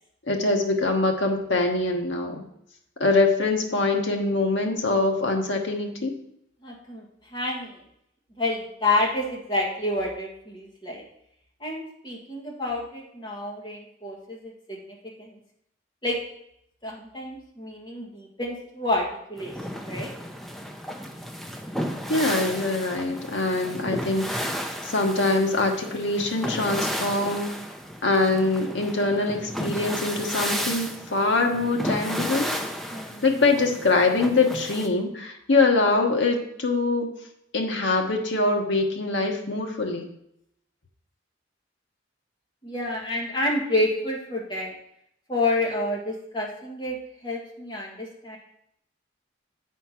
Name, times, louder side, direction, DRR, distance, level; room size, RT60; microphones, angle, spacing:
voice 1, 0.3-2.5 3.0-6.2 22.1-27.5 28.0-32.5 33.2-37.1 37.5-40.1, left 3 dB, 70° left, 2 dB, 1.2 m, -24 dB
voice 2, 6.6-7.0 7.3-7.7 8.4-11.0 11.6-15.4 16.0-16.2 16.8-20.1 32.9-33.2 42.6-44.7 45.3-47.0 47.2-48.4, left 2 dB, 25° left, -2 dB, 1.7 m, -29 dB
sound 1, 19.4-34.9, equal, ahead, 0.6 m, -33 dB
8.4 x 4.4 x 5.9 m, 0.75 s
head